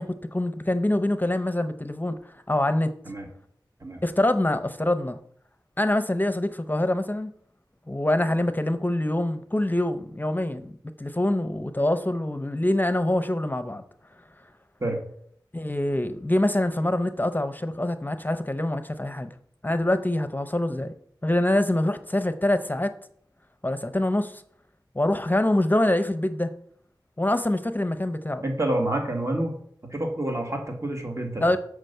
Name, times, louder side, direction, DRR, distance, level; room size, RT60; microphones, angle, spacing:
voice 1, 0.0-2.9 4.0-5.2 5.8-7.3 7.9-10.7 11.0-13.8 15.5-19.3 19.6-20.9 21.2-22.9 23.6-24.4 24.9-26.5 27.2-28.4 31.4-31.6, left 1 dB, 20° left, 0.7 m, -25 dB
voice 2, 28.4-29.5 29.8-31.5, right 1 dB, 40° right, 1.7 m, -28 dB
7.5 x 4.9 x 6.7 m
wide cardioid pair, 55°, 8 cm